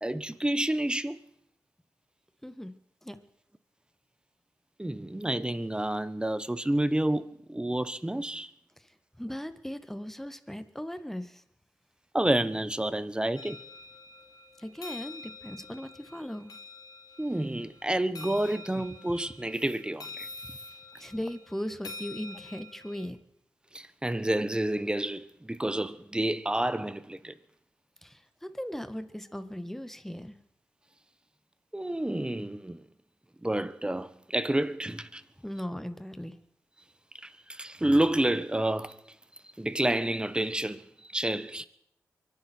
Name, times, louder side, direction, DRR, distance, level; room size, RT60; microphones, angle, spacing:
voice 1, 0.0-1.2 4.8-8.5 12.1-13.6 17.2-20.3 23.7-27.4 31.7-32.8 33.4-35.2 37.2-39.0 39.6-41.7, right 1 dB, 15° right, 1.2 m, -29 dB
voice 2, 2.4-2.7 3.0-3.2 9.2-11.4 14.6-16.6 21.0-23.2 28.0-30.4 35.4-36.3, equal, 5° left, 1.7 m, -38 dB
sound 1, 13.3-23.1, left 3 dB, 70° left, 2.5 m, -47 dB
24.0 x 11.0 x 4.6 m
cardioid pair, 45°, 7 cm